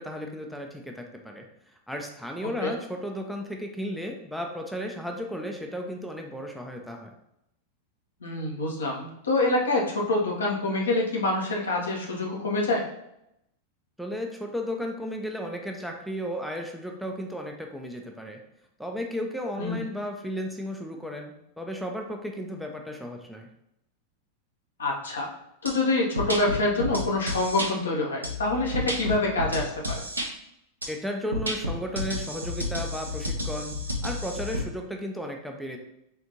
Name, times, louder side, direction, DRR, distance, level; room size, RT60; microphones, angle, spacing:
voice 1, 0.0-1.4 1.9-7.1 14.0-18.4 18.8-23.5 30.9-33.8 34.0-35.8, equal, ahead, 1 dB, 0.4 m, -34 dB
voice 2, 8.2-12.9 19.6-19.7 24.8-25.3 25.6-30.0, left 2 dB, 70° left, -1 dB, 0.8 m, -26 dB
sound 1, 25.7-25.8 26.2-27.7 28.2-30.3 30.8-30.9 31.3-34.6, left 1 dB, 80° right, 0.6 m, -31 dB
3.6 x 2.5 x 2.8 m, 0.80 s
figure-of-eight pair, 90°, 0 cm